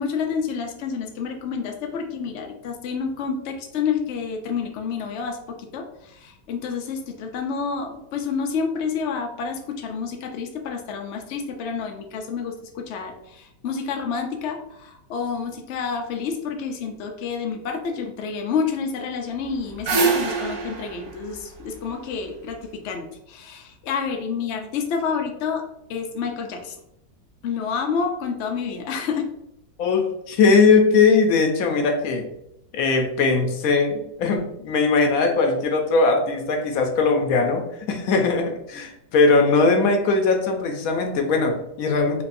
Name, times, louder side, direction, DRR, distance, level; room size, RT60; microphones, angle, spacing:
voice 1, 0.0-25.6 25.9-26.8 27.4-29.3, left 6 dB, 85° left, 3 dB, 0.6 m, -29 dB
sound 1, 19.4-22.5, right 4 dB, 65° right, 1.1 m, -25 dB
voice 2, 29.8-32.3 32.7-42.2, left 4 dB, 65° left, 4 dB, 0.9 m, -20 dB
4.8 x 2.6 x 2.5 m, 0.80 s
omnidirectional pair, 1.9 m